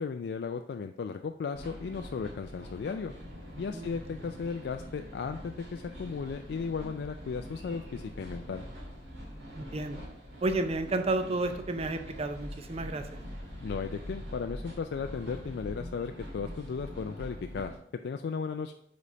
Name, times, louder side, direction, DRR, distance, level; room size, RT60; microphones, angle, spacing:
voice 1, 0.0-3.1 3.6-8.6 13.6-17.7 18.0-18.7, left 5 dB, 65° left, 6 dB, 0.3 m, -35 dB
sound 1, 1.5-17.8, equal, 70° right, 2.1 m, -44 dB
voice 2, 3.7-4.1 9.5-10.0 10.4-13.1, right 2 dB, 35° right, 8 dB, 0.5 m, -31 dB
5.0 x 4.0 x 5.5 m, 0.69 s
head